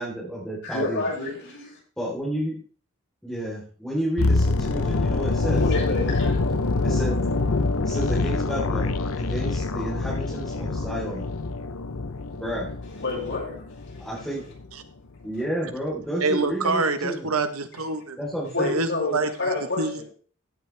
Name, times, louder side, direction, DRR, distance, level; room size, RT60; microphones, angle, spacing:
voice 1, 0.0-1.1 2.0-2.6 3.2-5.6 6.8-7.2 7.8-11.3 12.4-13.0 14.0-14.5 15.2-17.3 18.2-18.7, right 1 dB, 5° left, -8 dB, 4.0 m, -31 dB
voice 2, 0.6-1.8 5.6-6.4 13.0-13.7 18.5-20.0, left 3 dB, 60° left, -3 dB, 6.8 m, -29 dB
sound 1, 4.2-14.2 14.4-14.7, left 3 dB, 80° left, 0.9 m, -25 dB
voice 3, 16.2-18.2 18.6-19.3 19.8-20.0, right 3 dB, 85° right, 8 dB, 1.4 m, -25 dB
16.0 x 8.6 x 3.5 m, 0.43 s
head